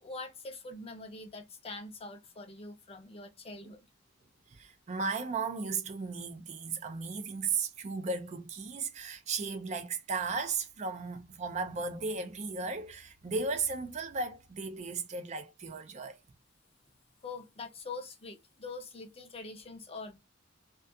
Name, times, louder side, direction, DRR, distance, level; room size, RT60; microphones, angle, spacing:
voice 1, 0.0-3.9 17.2-20.2, left 3 dB, 30° left, 0.5 m, -44 dB
voice 2, 4.5-16.2, right 4 dB, 35° right, 0.4 m, -35 dB
2.3 x 2.2 x 2.6 m
head